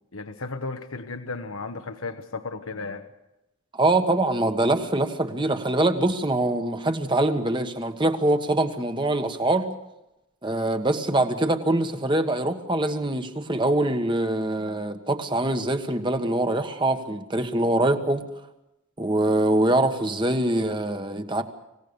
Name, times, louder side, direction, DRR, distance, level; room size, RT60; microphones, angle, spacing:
voice 1, 0.1-3.1, left 3 dB, 75° left, 7 dB, 1.2 m, -34 dB
voice 2, 3.7-9.7 10.4-18.2 19.0-21.4, right 1 dB, 20° right, 7 dB, 1.4 m, -24 dB
25.5 x 17.0 x 7.0 m, 0.93 s
head